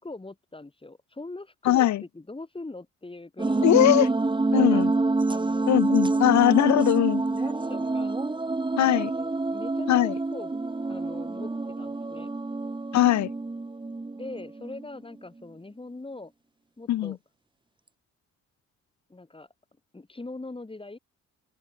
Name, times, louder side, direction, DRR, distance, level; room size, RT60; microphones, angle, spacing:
voice 1, 0.0-1.9 2.1-3.9 4.5-4.8 5.2-5.8 7.4-8.1 8.7-10.6 10.9-12.3 14.1-16.3 16.8-17.2 19.1-19.5 19.9-21.0, left 2 dB, 15° left, 6.3 m, -41 dB
voice 2, 1.7-2.0 3.6-4.1 4.5-4.9 5.7-7.2 8.8-9.1 9.9-10.1 12.9-13.3 16.9-17.1, left 13 dB, 65° left, 0.9 m, -20 dB
sound 1, 3.4-14.8, right 3 dB, 15° right, 1.6 m, -27 dB
open air
cardioid pair, 90°, 30 cm